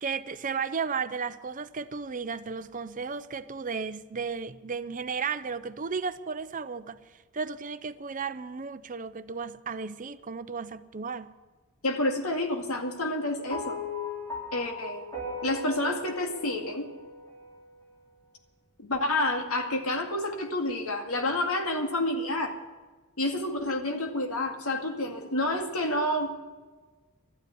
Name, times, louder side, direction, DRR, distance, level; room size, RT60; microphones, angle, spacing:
voice 1, 0.0-7.0 7.3-11.3, right 5 dB, 35° right, 0.6 m, -34 dB
voice 2, 11.8-13.8 14.5-15.0 15.4-16.9 18.8-22.5 23.2-26.3, left 1 dB, 70° left, 2.1 m, -29 dB
sound 1, 13.5-17.9, left 3 dB, 15° left, 3.7 m, -38 dB
13.0 x 9.7 x 9.3 m
head